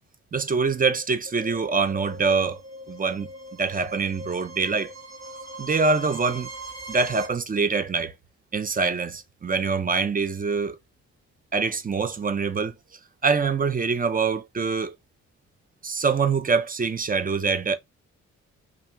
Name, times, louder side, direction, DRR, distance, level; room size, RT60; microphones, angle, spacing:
voice 1, 0.3-2.6 2.9-4.9 5.6-6.5 6.9-8.1 8.5-10.8 11.5-12.7 13.2-15.0 15.8-17.8, right 4 dB, 25° right, 0.5 m, -24 dB
sound 1, 1.3-7.3, right 1 dB, 55° right, 1.2 m, -40 dB
2.6 x 2.3 x 2.2 m
supercardioid pair, 45°, 32 cm